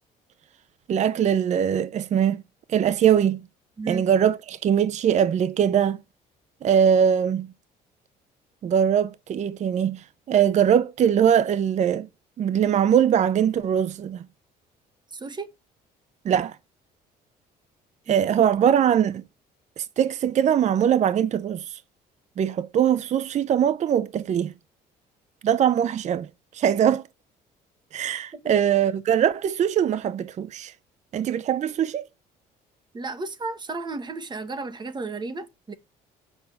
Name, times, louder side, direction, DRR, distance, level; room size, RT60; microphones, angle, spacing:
voice 1, 0.9-2.4 2.7-3.4 3.9-6.0 6.6-7.5 8.6-12.1 12.4-14.2 16.2-16.6 18.1-19.2 19.8-21.8 22.4-24.5 25.4-26.3 26.5-27.0 27.9-30.7 31.1-32.1, right 9 dB, 45° right, 0.6 m, -22 dB
voice 2, 15.1-15.5 18.1-18.2 32.9-35.7, right 3 dB, 25° right, 1.6 m, -33 dB
7.9 x 5.5 x 7.1 m
cardioid pair, 110°, 17 cm